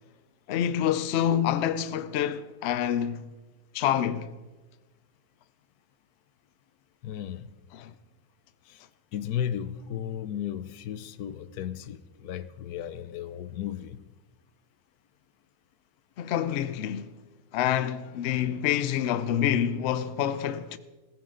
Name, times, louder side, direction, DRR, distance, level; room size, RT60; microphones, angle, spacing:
voice 1, 0.5-3.3 3.7-4.3 7.7-7.9 16.2-17.2 17.5-20.8, left 10 dB, 60° left, 0.8 m, -27 dB
voice 2, 7.0-7.5 8.7-8.8 9.1-14.0, left 10 dB, 80° left, 1.2 m, -35 dB
15.5 x 14.5 x 3.8 m
omnidirectional pair, 1.6 m